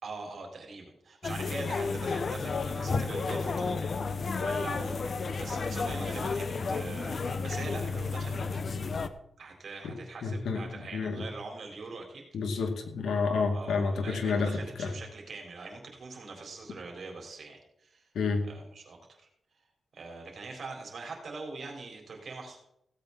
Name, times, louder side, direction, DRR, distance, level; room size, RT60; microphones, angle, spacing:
voice 1, 0.0-3.7 4.1-8.4 9.4-12.2 13.5-18.1 18.4-19.2 19.9-22.6, right 3 dB, 70° right, 2 dB, 4.0 m, -43 dB
sound 1, 1.2-9.1, left 4 dB, 60° left, 0.9 m, -32 dB
voice 2, 10.2-10.6 10.9-11.2 12.3-14.9 18.1-18.4, left 4 dB, 90° left, 4 dB, 2.0 m, -29 dB
17.0 x 8.7 x 4.0 m, 0.76 s
cardioid pair, 65°, 0 cm